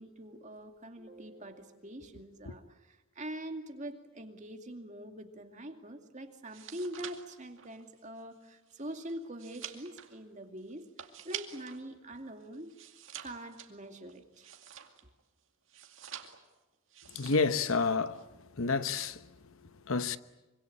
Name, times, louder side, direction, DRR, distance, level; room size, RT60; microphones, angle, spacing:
voice 1, 0.0-12.8 13.2-14.5, right 1 dB, 35° right, 2.4 m, -44 dB
sound 1, 6.3-11.8 12.2-15.2 15.7-16.6 16.9-17.6 17.9-18.2, right 10 dB, 55° right, 2.3 m, -47 dB
voice 2, 17.1-18.2 18.5-20.2, left 4 dB, 65° left, 1.0 m, -30 dB
25.5 x 25.0 x 8.7 m
head